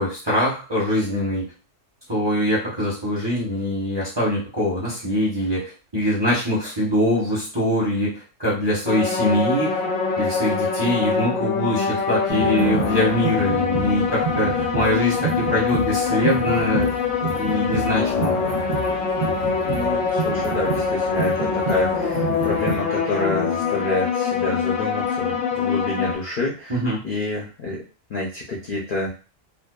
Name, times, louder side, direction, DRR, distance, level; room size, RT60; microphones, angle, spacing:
voice 1, 0.0-1.5 2.1-9.8 10.2-16.9 17.4-18.4 26.7-27.0, equal, 25° right, -6 dB, 0.7 m, -23 dB
sound 1, 8.9-26.2, left 6 dB, 90° left, 1.0 m, -24 dB
sound 2, 12.3-22.8, right 5 dB, 65° right, 0.4 m, -30 dB
voice 2, 19.6-27.8 28.1-29.1, left 2 dB, 60° left, -4 dB, 0.6 m, -28 dB
2.5 x 2.3 x 2.2 m, 0.35 s
omnidirectional pair, 1.4 m